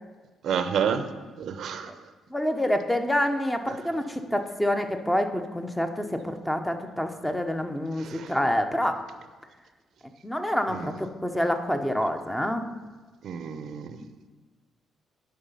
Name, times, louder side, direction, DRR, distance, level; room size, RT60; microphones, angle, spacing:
voice 1, 0.4-1.1 1.4-1.9 8.0-8.3 10.7-10.9 13.2-13.9, right 7 dB, 70° right, 10 dB, 0.6 m, -29 dB
voice 2, 2.3-9.0 10.2-12.7, left 1 dB, 10° left, 6 dB, 0.8 m, -27 dB
10.0 x 4.9 x 5.6 m, 1.3 s
cardioid pair, 90°, 0 cm